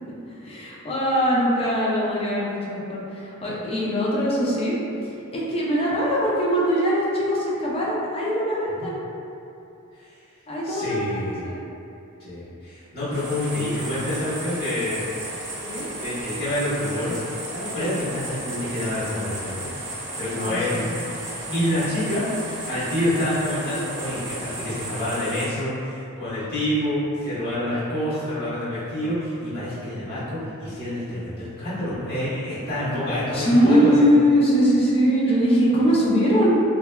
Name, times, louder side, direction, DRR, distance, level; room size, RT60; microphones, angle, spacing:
voice 1, 0.3-4.8 5.0-9.0 10.5-11.6 15.6-15.8 20.3-20.8 21.5-21.7 33.3-36.6, equal, 25° left, -6 dB, 0.5 m, -22 dB
voice 2, 10.6-11.5 12.2-15.1 16.0-17.2 17.5-19.7 20.2-20.7 21.5-22.3 22.5-33.9 35.2-35.3, left 1 dB, 45° left, -13 dB, 1.3 m, -27 dB
sound 1, 13.1-25.5, right 1 dB, 55° right, 0.6 m, -34 dB
3.1 x 2.2 x 2.2 m, 2.7 s
head